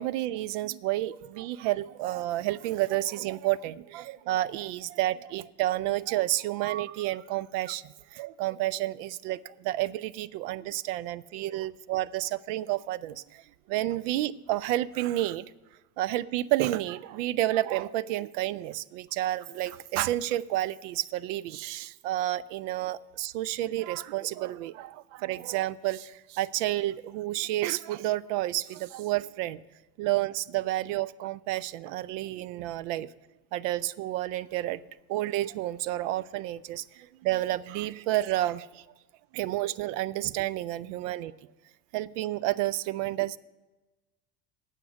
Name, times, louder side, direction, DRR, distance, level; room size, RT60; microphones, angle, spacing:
voice 1, 0.0-15.5 16.0-29.6 30.0-33.1 33.5-34.8 35.1-38.9 39.3-41.3 41.9-43.4, right 15 dB, 55° right, 18 dB, 0.5 m, -30 dB
9.0 x 6.5 x 8.6 m, 1.1 s
hypercardioid pair, 70°, 45 cm